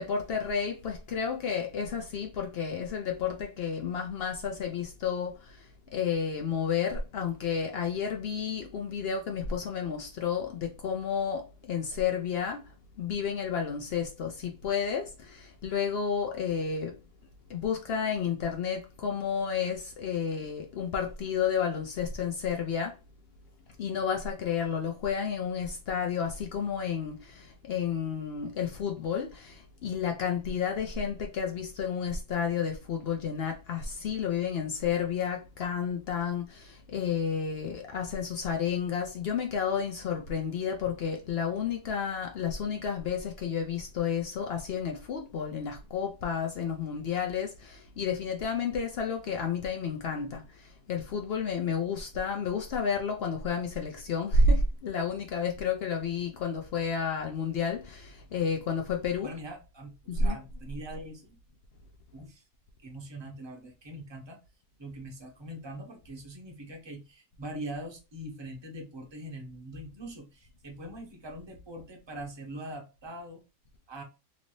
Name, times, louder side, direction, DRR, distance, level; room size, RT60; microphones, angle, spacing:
voice 1, 0.0-12.7 13.0-17.0 17.5-23.0 23.8-59.3 60.1-60.4, left 6 dB, 85° left, 0.5 m, -31 dB
voice 2, 59.2-61.4 62.1-62.4 62.8-64.4 64.8-73.4 73.9-74.0, right 1 dB, 25° right, 0.6 m, -42 dB
3.1 x 2.6 x 3.0 m
omnidirectional pair, 1.7 m